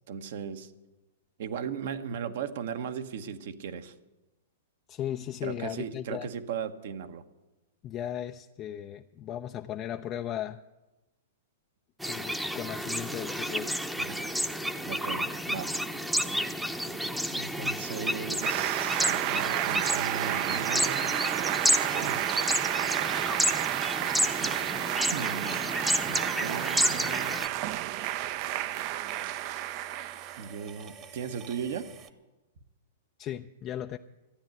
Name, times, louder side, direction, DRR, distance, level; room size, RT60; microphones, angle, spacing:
voice 1, 0.1-0.7 1.4-3.9 5.4-7.2 14.0-14.2 14.9-15.7 17.3-21.1 22.0-22.3 24.4-24.6 25.1-25.8 26.0-27.4 30.4-31.9, right 7 dB, 65° right, 9 dB, 1.1 m, -37 dB
voice 2, 4.9-6.3 7.8-10.6 12.1-13.7 33.2-34.0, left 11 dB, 35° left, 7 dB, 0.5 m, -36 dB
sound 1, 12.0-27.5, equal, 5° right, 0.8 m, -31 dB
sound 2, 18.4-30.5, right 14 dB, 45° right, 0.5 m, -31 dB
sound 3, 21.0-32.1, right 7 dB, 30° right, 1.2 m, -49 dB
13.0 x 9.5 x 9.1 m, 1.1 s
hypercardioid pair, 120°, 0 cm